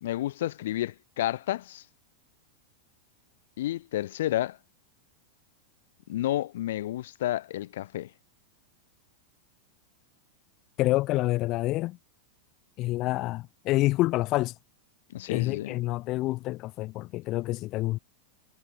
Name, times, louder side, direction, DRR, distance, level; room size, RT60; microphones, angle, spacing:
voice 1, 0.0-1.8 3.6-4.6 6.1-8.1 15.1-15.8, left 14 dB, 70° left, 1.1 m, -30 dB
voice 2, 10.8-12.0 12.8-14.5 15.3-18.0, left 18 dB, 45° left, 4.2 m, -27 dB
hypercardioid pair, 115°, 0 cm